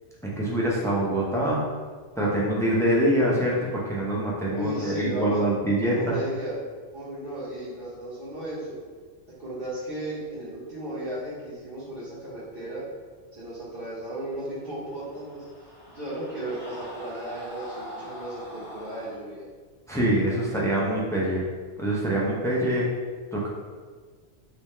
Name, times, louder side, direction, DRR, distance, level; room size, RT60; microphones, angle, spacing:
voice 1, 0.2-1.6 2.2-6.2 19.9-21.4 21.8-22.9 23.3-23.5, right 1 dB, 5° left, -5 dB, 0.3 m, -24 dB
voice 2, 4.5-5.4 5.8-6.6 6.9-8.8 9.4-12.8 13.3-15.4 15.9-19.4, right 1 dB, 55° right, -10 dB, 1.1 m, -35 dB
sound 1, 14.7-19.1, equal, 25° left, 0.9 m, -42 dB
3.5 x 2.9 x 3.2 m, 1.5 s
omnidirectional pair, 1.2 m